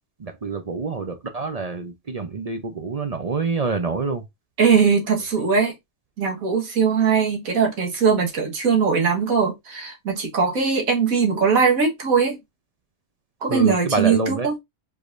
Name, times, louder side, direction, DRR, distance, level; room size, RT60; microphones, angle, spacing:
voice 1, 0.2-4.2 13.5-14.5, right 4 dB, 40° right, 0.5 m, -27 dB
voice 2, 4.6-5.7 6.2-12.4 13.4-14.5, right 6 dB, 90° right, 1.9 m, -20 dB
4.9 x 4.0 x 2.5 m
omnidirectional pair, 1.4 m